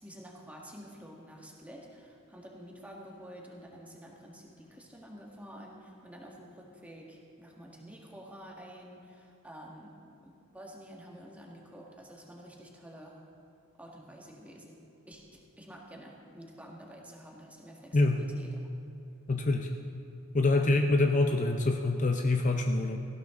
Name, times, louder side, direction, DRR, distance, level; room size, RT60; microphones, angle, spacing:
voice 1, 0.0-9.9 10.2-13.3 13.7-14.8 15.1-18.6 20.5-20.8, equal, 5° right, -2 dB, 1.8 m, -49 dB
voice 2, 17.9-18.3 19.3-19.7 20.3-23.0, left 2 dB, 35° left, 4 dB, 0.6 m, -26 dB
18.0 x 15.5 x 3.8 m, 2.6 s
head